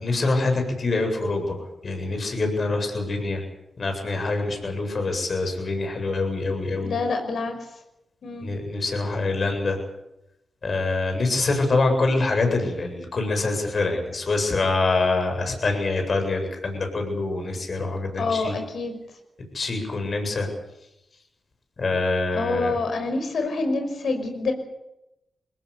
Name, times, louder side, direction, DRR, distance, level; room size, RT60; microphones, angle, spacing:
voice 1, 0.0-3.4 3.8-7.0 8.4-9.8 10.6-18.5 19.5-20.5 21.8-22.7, left 3 dB, 55° left, 5 dB, 7.9 m, -25 dB
voice 2, 6.8-7.6 8.2-8.5 18.2-19.0 22.3-24.5, left 3 dB, 70° left, 6 dB, 5.8 m, -26 dB
22.0 x 18.0 x 8.5 m, 0.88 s
supercardioid pair, 45°, 0 cm